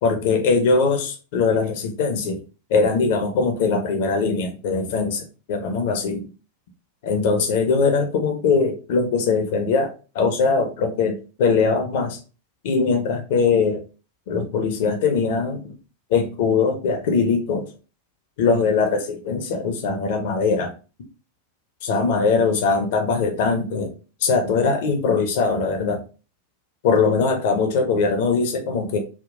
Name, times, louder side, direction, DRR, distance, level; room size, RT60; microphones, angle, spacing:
voice 1, 0.0-2.4 2.7-6.3 7.0-12.2 12.6-13.8 14.3-15.8 16.1-17.7 18.4-20.7 21.8-23.9 24.2-26.0 26.8-29.0, left 4 dB, 50° left, 5 dB, 0.6 m, -21 dB
3.5 x 2.3 x 2.5 m, 0.34 s
figure-of-eight pair, 90°, 0 cm